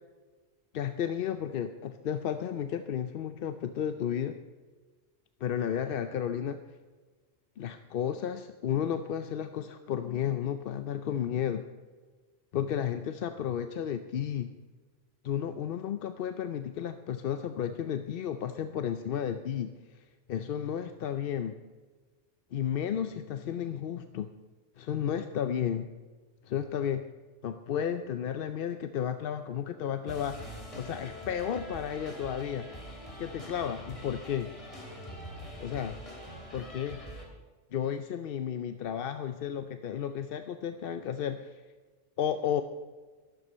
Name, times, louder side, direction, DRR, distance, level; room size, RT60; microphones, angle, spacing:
voice 1, 0.7-4.4 5.4-6.6 7.6-11.6 12.5-14.5 15.2-20.0 20.3-21.6 22.5-24.3 24.8-25.9 26.4-27.1 27.4-32.7 33.2-34.6 35.6-36.0 36.5-37.0 37.7-41.6 42.2-42.6, left 9 dB, 60° left, 9 dB, 0.7 m, -33 dB
sound 1, 30.1-37.3, equal, 30° left, 2.9 m, -44 dB
12.5 x 12.0 x 5.5 m, 1.4 s
omnidirectional pair, 1.2 m